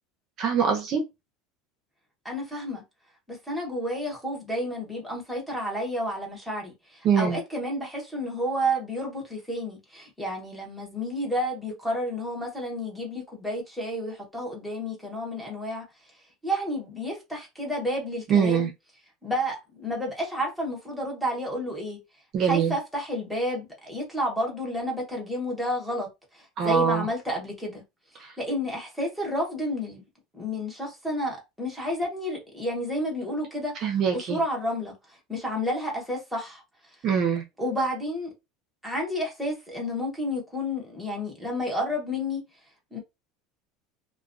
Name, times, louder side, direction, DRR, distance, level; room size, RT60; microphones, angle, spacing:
voice 1, 0.4-1.0 7.0-7.4 18.3-18.7 22.3-22.7 26.6-27.1 33.8-34.4 37.0-37.4, right 7 dB, 45° right, 0.6 m, -23 dB
voice 2, 2.2-2.8 3.3-15.8 16.4-18.7 19.2-22.0 22.4-26.1 26.3-27.8 28.1-30.0 30.3-33.8 34.1-34.9 35.3-36.6 37.6-38.3 38.8-42.4 42.9-43.0, equal, ahead, 1.1 m, -30 dB
2.2 x 2.2 x 2.5 m
supercardioid pair, 130°, 0 cm